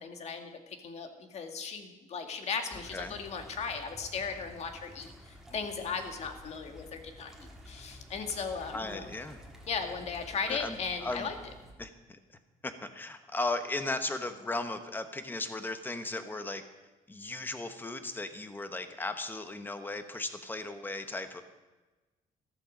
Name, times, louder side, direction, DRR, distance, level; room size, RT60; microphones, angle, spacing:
voice 1, 0.0-9.1 9.7-11.4, left 5 dB, 50° left, 6 dB, 1.9 m, -37 dB
sound 1, 2.7-11.7, equal, 5° right, 2.1 m, -51 dB
voice 2, 8.7-9.4 10.5-11.3 11.8-12.2 12.6-16.6 17.1-21.4, left 2 dB, 15° left, 9 dB, 1.2 m, -36 dB
14.0 x 13.5 x 5.2 m, 1.2 s
cardioid pair, 135°, 14 cm